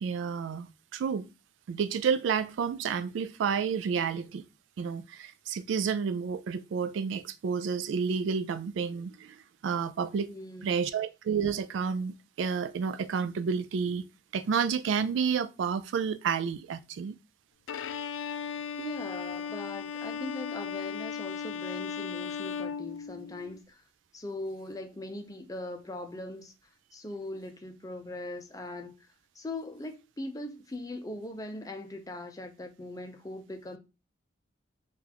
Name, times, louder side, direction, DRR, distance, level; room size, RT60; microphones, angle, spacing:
voice 1, 0.0-1.3 1.7-4.5 4.8-9.4 9.6-10.3 10.6-14.0 14.3-17.2, right 6 dB, 75° right, 0.3 m, -30 dB
voice 2, 10.3-10.8 18.8-23.7 24.1-26.5 26.9-28.9 29.4-33.8, left 2 dB, 20° left, 0.5 m, -40 dB
Bowed string instrument, 17.7-23.6, left 6 dB, 80° left, 0.3 m, -36 dB
3.9 x 2.4 x 2.8 m
head